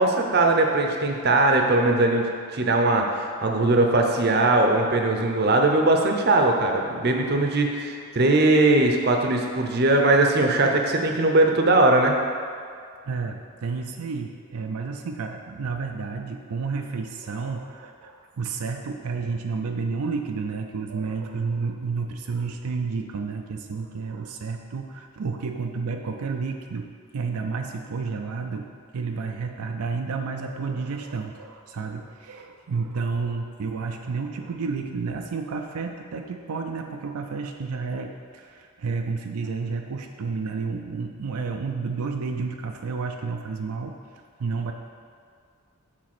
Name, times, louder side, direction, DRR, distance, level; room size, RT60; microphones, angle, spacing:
voice 1, 0.0-2.3 2.5-12.1, right 2 dB, 45° right, 2 dB, 0.7 m, -20 dB
voice 2, 13.1-26.9 27.1-28.7 28.9-44.0 44.4-44.7, right 4 dB, 85° right, 4 dB, 0.5 m, -31 dB
7.5 x 4.0 x 5.9 m, 2.2 s
head